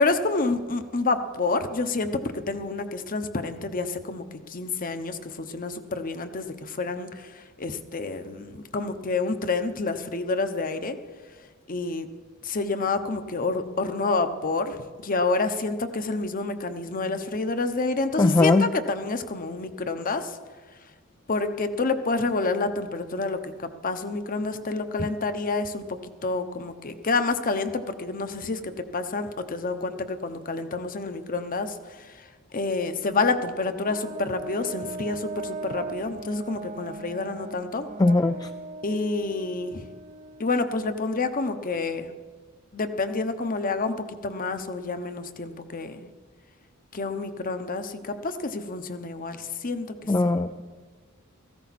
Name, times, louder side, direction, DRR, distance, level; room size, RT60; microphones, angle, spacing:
voice 1, 0.0-11.0 11.7-12.1 12.4-20.4 21.3-23.5 23.8-32.3 32.5-37.9 38.8-39.9 40.4-42.1 42.7-46.1 46.9-50.4, left 3 dB, 40° left, 9 dB, 0.9 m, -28 dB
voice 2, 18.2-18.7 25.0-25.1 38.0-38.5 50.1-50.7, left 2 dB, 20° left, 7 dB, 0.3 m, -20 dB
Brass instrument, 33.8-40.6, right 3 dB, 35° right, 0.6 m, -38 dB
17.0 x 15.0 x 4.2 m, 1.5 s
head